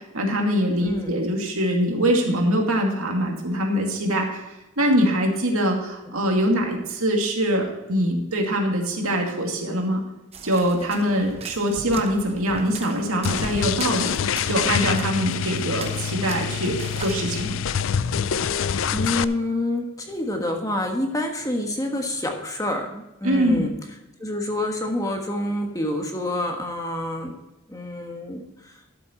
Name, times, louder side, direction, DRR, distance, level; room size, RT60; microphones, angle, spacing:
voice 1, 0.0-4.4 4.8-10.0 10.4-14.2 14.5-17.6 23.2-23.7, equal, 85° right, 1 dB, 2.4 m, -23 dB
sound 1, 10.3-17.1, right 3 dB, 30° right, 0.9 m, -40 dB
sound 2, 13.2-19.2, left 7 dB, 70° left, 0.4 m, -26 dB
voice 2, 18.9-23.7 24.2-27.3 27.7-28.7, left 1 dB, 15° left, 2 dB, 1.3 m, -27 dB
12.5 x 7.6 x 4.4 m, 0.99 s
head